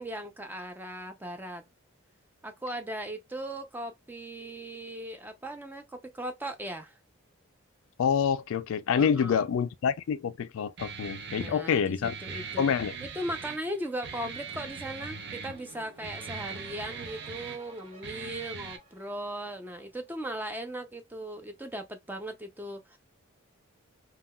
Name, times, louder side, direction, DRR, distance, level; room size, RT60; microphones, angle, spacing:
voice 1, 0.0-1.6 2.4-6.9 8.9-9.4 11.4-12.6 13.0-23.0, right 1 dB, 10° right, 0.4 m, -38 dB
voice 2, 8.0-12.1 12.6-13.0, left 7 dB, 70° left, 0.3 m, -27 dB
Guitar, 10.8-18.8, right 5 dB, 50° right, 0.6 m, -41 dB
sound 1, 14.5-19.9, right 1 dB, 30° right, 1.2 m, -53 dB
3.7 x 2.3 x 2.2 m
head